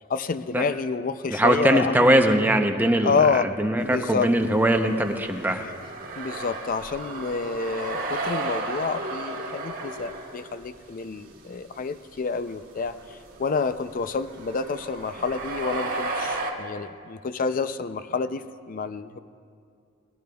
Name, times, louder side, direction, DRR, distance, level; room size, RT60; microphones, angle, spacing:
voice 1, 0.1-2.1 3.0-3.5 3.8-4.3 6.2-12.9 13.4-19.2, left 4 dB, 45° left, 12 dB, 0.4 m, -28 dB
voice 2, 1.3-5.6, right 1 dB, 10° right, 4 dB, 0.7 m, -21 dB
sound 1, 3.9-10.6 11.1-11.5 11.7-11.8 12.4-16.5, right 2 dB, 50° right, 1.5 m, -34 dB
19.5 x 17.0 x 2.3 m, 2.4 s
head